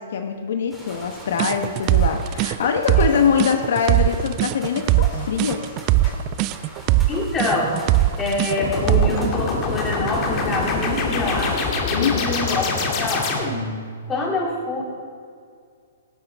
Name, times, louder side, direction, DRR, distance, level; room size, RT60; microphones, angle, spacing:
voice 1, 0.0-5.7 6.0-6.1 11.9-12.3, left 6 dB, 65° left, 5 dB, 1.0 m, -23 dB
sound 1, 0.7-11.7, equal, ahead, 3.1 m, -40 dB
sound 2, 1.4-9.3, right 16 dB, 35° right, 0.3 m, -20 dB
voice 2, 7.1-7.7 8.2-11.5 11.9-13.3 14.1-14.8, left 2 dB, 15° left, -3 dB, 3.2 m, -25 dB
sound 3, 8.6-13.8, left 4 dB, 35° left, 2.2 m, -24 dB
18.5 x 7.9 x 4.6 m, 2.2 s
hypercardioid pair, 135°, 0 cm